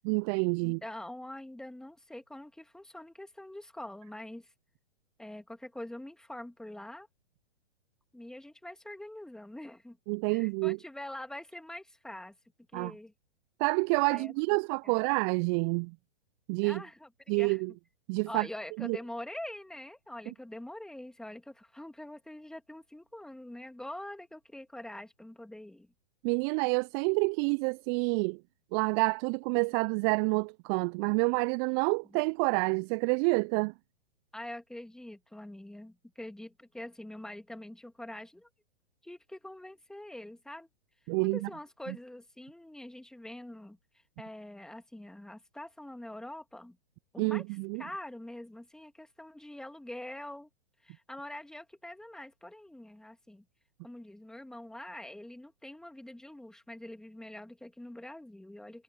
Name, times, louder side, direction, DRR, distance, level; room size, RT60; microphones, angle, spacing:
voice 1, 0.0-0.8 10.1-10.8 12.7-12.9 13.6-15.9 16.5-16.8 17.3-17.7 18.1-18.5 18.8-19.0 26.2-28.4 28.7-33.7 41.1-41.5 47.2-47.8, right 40 dB or more, 25° right, 0.8 m, -28 dB
voice 2, 0.6-4.5 5.2-7.1 8.1-10.0 10.3-12.3 12.7-13.1 14.1-15.0 16.6-17.1 17.4-17.6 18.3-25.9 32.1-32.2 34.3-38.5 39.0-40.7 41.3-43.8 44.2-46.8 47.1-47.4 47.8-50.5 50.8-53.4 53.8-58.8, left 1 dB, ahead, 2.8 m, -44 dB
figure-of-eight pair, 115°, 30 cm